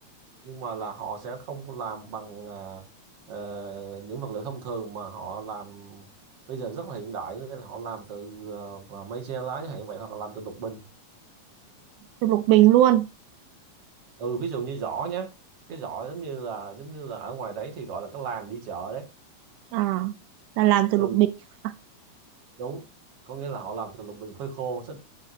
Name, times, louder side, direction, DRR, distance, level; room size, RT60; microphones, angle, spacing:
voice 1, 0.4-2.9 3.3-6.1 6.5-10.8 14.2-15.3 15.7-19.1 21.0-21.2 22.6-22.8 23.3-25.0, right 5 dB, 50° right, 2.8 m, -35 dB
voice 2, 12.2-13.1 19.7-20.2 20.6-21.3 21.6-21.7, right 14 dB, 90° right, 2.1 m, -19 dB
14.5 x 6.2 x 2.8 m
omnidirectional pair, 3.4 m